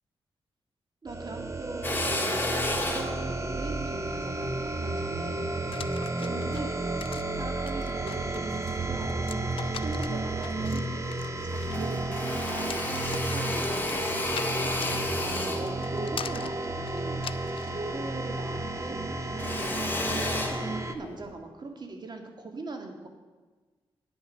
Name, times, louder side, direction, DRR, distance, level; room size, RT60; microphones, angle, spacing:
voice 1, 1.0-5.5 5.9-6.8 7.4-11.1 11.5-17.2 17.7-23.1, right 3 dB, 45° right, 4 dB, 1.9 m, -41 dB
sound 1, 1.1-20.9, right 2 dB, 30° right, 0.9 m, -32 dB
Drill, 1.8-6.4 6.9-8.1 8.6-9.5 9.9-10.0 10.2-11.2 11.5-18.2 18.4-21.3, left 2 dB, 20° left, 1.7 m, -34 dB
sound 2, 5.7-17.8, left 7 dB, 60° left, 0.5 m, -42 dB
9.1 x 8.4 x 6.4 m, 1.3 s
cardioid pair, 70°, 10 cm